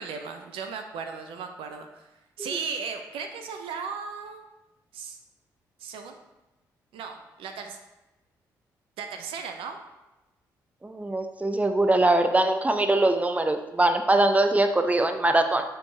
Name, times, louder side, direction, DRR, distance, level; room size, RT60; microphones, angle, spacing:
voice 1, 0.0-2.1 2.4-4.4 4.9-5.2 5.8-6.2 6.9-7.8 9.0-9.8, right 5 dB, 65° right, 5 dB, 0.6 m, -36 dB
voice 2, 10.8-15.6, right 2 dB, 15° right, 7 dB, 0.7 m, -22 dB
9.2 x 3.5 x 3.3 m, 1.0 s
hypercardioid pair, 40°, 10 cm